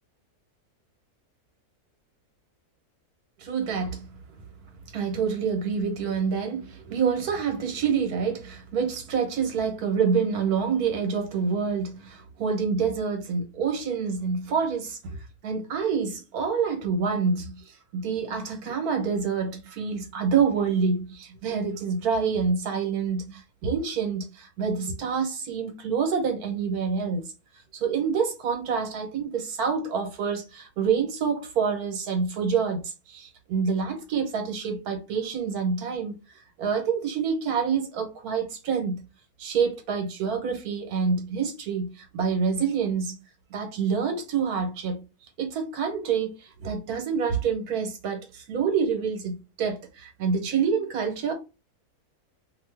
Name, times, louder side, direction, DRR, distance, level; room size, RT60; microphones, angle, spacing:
voice 1, 3.4-4.1 4.9-15.0 15.4-27.2 27.7-36.1 36.6-39.0 39.4-43.2 43.5-45.0 45.4-51.3, right 6 dB, 75° right, 1.3 m, -27 dB
2.7 x 2.5 x 3.2 m
omnidirectional pair, 1.6 m